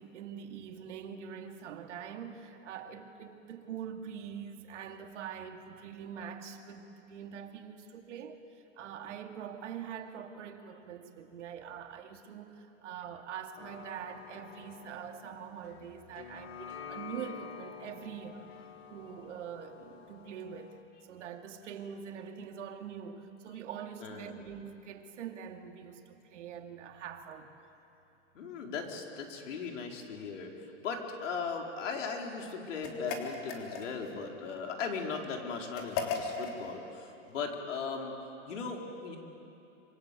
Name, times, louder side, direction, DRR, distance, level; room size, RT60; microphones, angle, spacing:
voice 1, 0.0-18.5 18.9-27.5, right 8 dB, 70° right, 4 dB, 2.6 m, -44 dB
sound 1, 13.6-20.8, left 7 dB, 60° left, 2.7 m, -49 dB
voice 2, 24.0-24.3 28.3-38.1 38.5-39.2, left 5 dB, 75° left, 2 dB, 4.5 m, -38 dB
sound 2, 32.8-34.1 35.7-36.6, left 5 dB, 35° left, 3.5 m, -36 dB
26.5 x 26.0 x 8.4 m, 2.8 s
supercardioid pair, 155°, 37 cm